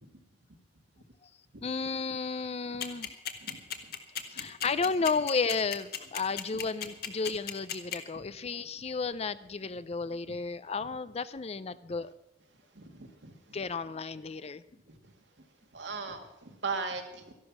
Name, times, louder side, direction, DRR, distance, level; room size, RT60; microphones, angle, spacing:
voice 1, 1.6-3.2 4.3-12.1 13.5-14.6, left 4 dB, 35° left, 15 dB, 0.5 m, -33 dB
sound 1, 2.8-8.0, left 9 dB, 55° left, 1.5 m, -34 dB
voice 2, 3.4-3.9 4.3-4.5 8.1-8.2 12.7-13.6 14.9-15.4 15.7-17.3, right 4 dB, 85° right, 5 dB, 2.1 m, -40 dB
14.0 x 11.5 x 6.0 m, 0.92 s
head